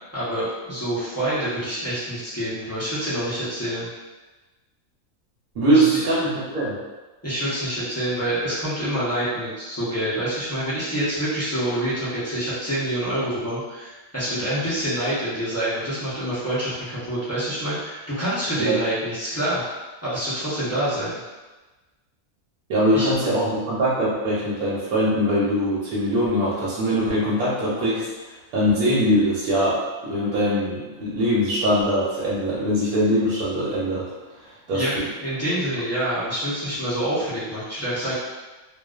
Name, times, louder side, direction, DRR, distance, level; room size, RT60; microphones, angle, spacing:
voice 1, 0.1-3.9 5.7-6.1 7.2-19.6 20.0-21.2 22.9-23.1 34.7-34.9 35.2-38.1, right 1 dB, 25° left, -12 dB, 0.3 m, -26 dB
voice 2, 5.6-6.8 18.6-18.8 22.7-28.1 28.5-34.1 34.7-34.8, equal, 80° right, -8 dB, 1.1 m, -22 dB
2.4 x 2.3 x 2.3 m, 1.2 s
omnidirectional pair, 1.5 m